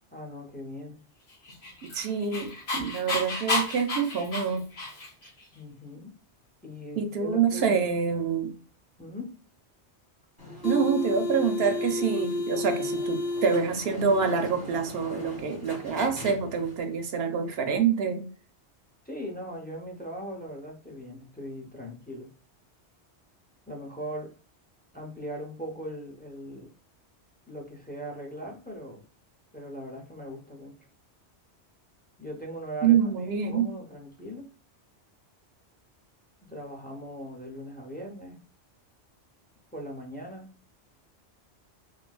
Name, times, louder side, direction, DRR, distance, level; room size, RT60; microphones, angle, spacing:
voice 1, 0.1-1.0 5.5-6.1 6.6-7.9 9.0-9.4 19.1-22.3 23.7-24.3 24.9-26.7 27.5-29.0 29.5-30.7 32.2-34.5 36.5-38.4 39.7-40.5, equal, 15° left, 0.4 m, -39 dB
Dog, 1.4-5.3, left 2 dB, 65° left, 1.2 m, -31 dB
voice 2, 1.8-4.7 7.0-8.5 10.6-18.3 32.8-33.7, right 6 dB, 65° right, 0.7 m, -26 dB
sound 1, 10.4-16.8, left 2 dB, 40° left, 1.6 m, -33 dB
3.1 x 2.8 x 2.2 m
omnidirectional pair, 1.2 m